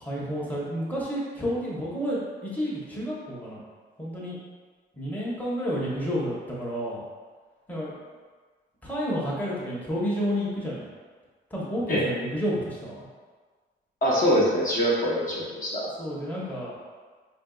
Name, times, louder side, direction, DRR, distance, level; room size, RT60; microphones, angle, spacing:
voice 1, 0.0-2.2 2.5-3.6 4.0-4.4 5.0-7.0 7.7-7.9 8.8-10.8 11.5-13.1 16.0-16.7, equal, 10° left, -6 dB, 0.9 m, -30 dB
voice 2, 14.0-15.9, equal, 45° left, -5 dB, 0.8 m, -24 dB
4.4 x 2.6 x 2.3 m, 1.5 s
cardioid pair, 90°, 20 cm